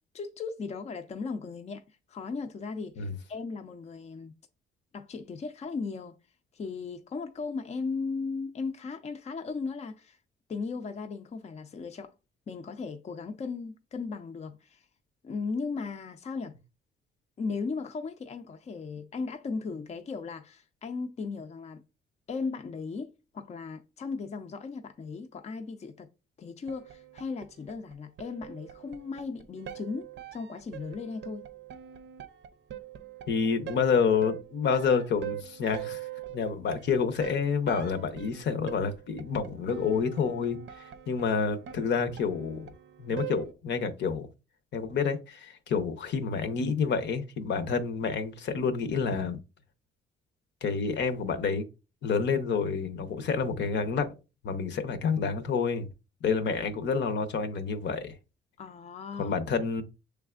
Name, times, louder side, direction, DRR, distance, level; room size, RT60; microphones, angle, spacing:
voice 1, 0.1-4.3 4.9-6.2 6.5-10.2 10.5-12.1 12.5-14.9 15.2-16.5 17.4-21.8 22.3-23.1 23.3-26.1 26.4-31.5 58.6-59.4, left 4 dB, 35° left, 0.5 m, -37 dB
sound 1, 26.7-43.5, right 12 dB, 65° right, 0.5 m, -43 dB
voice 2, 33.3-36.0 36.3-40.6 41.1-42.7 43.0-44.3 44.7-49.4 50.6-51.7 52.0-54.1 54.4-55.9 56.2-58.2 59.2-59.8, left 5 dB, 60° left, 0.8 m, -28 dB
6.4 x 3.4 x 2.4 m
cardioid pair, 90°, 20 cm